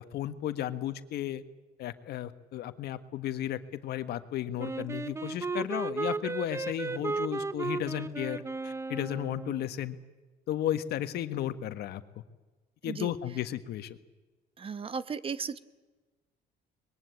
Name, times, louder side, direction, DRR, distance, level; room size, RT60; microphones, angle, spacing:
voice 1, 0.0-1.4 1.8-10.0 10.5-12.0 12.8-14.0, left 12 dB, 70° left, 10 dB, 1.6 m, -34 dB
Wind instrument woodwind instrument, 4.6-9.7, right 3 dB, 15° right, 0.7 m, -35 dB
voice 2, 12.8-13.1 14.6-15.6, right 5 dB, 35° right, 14 dB, 1.1 m, -35 dB
23.0 x 21.5 x 8.5 m, 1.2 s
cardioid pair, 110°, 17 cm